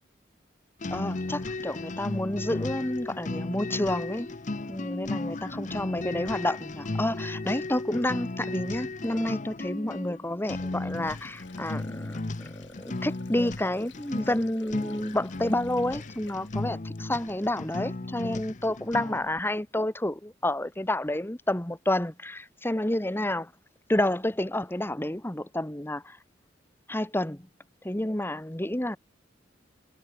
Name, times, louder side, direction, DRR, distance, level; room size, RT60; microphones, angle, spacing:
sound 1, 0.8-19.3, left 2 dB, 45° left, 0.9 m, -35 dB
voice 1, 0.9-4.3 4.7-23.5 23.9-26.2 26.9-27.5 27.8-29.0, left 1 dB, 15° left, 1.5 m, -29 dB
Sink (filling or washing), 10.5-17.3, left 5 dB, 90° left, 5.2 m, -55 dB
head